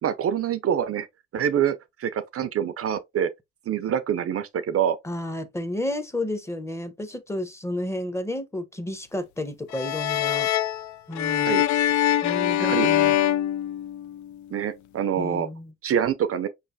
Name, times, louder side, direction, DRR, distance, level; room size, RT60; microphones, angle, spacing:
voice 1, 0.0-1.1 1.3-3.3 3.7-5.0 11.4-11.7 12.6-12.9 14.5-15.5 15.8-16.5, right 9 dB, 50° right, 0.5 m, -25 dB
voice 2, 5.0-10.5 11.1-11.6 12.2-13.2 15.2-15.7, left 1 dB, 10° left, 0.8 m, -31 dB
sound 1, 9.7-14.3, left 12 dB, 70° left, 0.5 m, -23 dB
5.3 x 3.2 x 2.6 m
cardioid pair, 90°, 30 cm